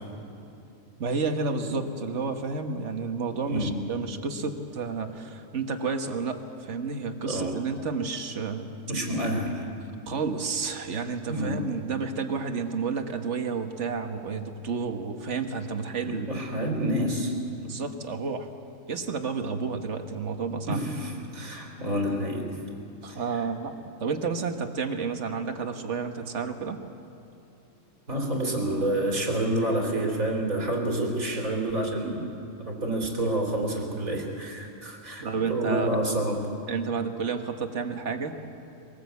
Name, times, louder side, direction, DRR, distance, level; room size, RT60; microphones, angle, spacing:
voice 1, 1.0-8.7 10.1-16.3 17.6-18.5 18.9-20.8 23.0-23.7 24.0-26.8 32.0-32.3 35.2-36.0 36.7-38.5, right 5 dB, 60° right, 6 dB, 1.6 m, -31 dB
voice 2, 3.5-3.8 7.2-7.6 8.9-9.7 11.3-11.8 16.0-17.4 20.7-22.5 23.1-23.5 28.1-36.5, right 1 dB, 80° right, 1 dB, 3.7 m, -28 dB
23.0 x 19.0 x 8.2 m, 2.8 s
omnidirectional pair, 1.4 m